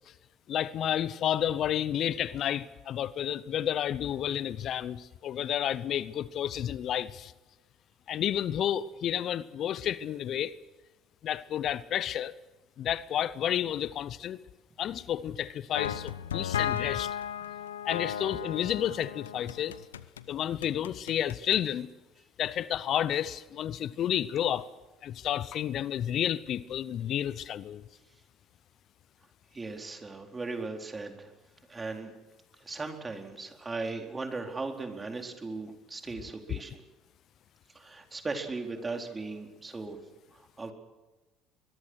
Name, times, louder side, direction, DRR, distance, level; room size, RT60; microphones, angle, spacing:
voice 1, 0.5-7.3 8.1-10.5 11.2-12.3 12.8-14.4 14.8-17.1 17.8-19.7 20.3-21.9 22.4-24.7 25.0-27.8, left 10 dB, 55° left, 0.7 m, -31 dB
sound 1, 15.7-20.3 20.6-21.6, left 9 dB, 85° left, 0.8 m, -35 dB
voice 2, 29.5-31.3 31.7-32.1 32.6-36.8 37.7-40.0 40.3-40.7, right 3 dB, 25° right, 4.1 m, -37 dB
24.5 x 21.5 x 6.4 m
hypercardioid pair, 60°, 0 cm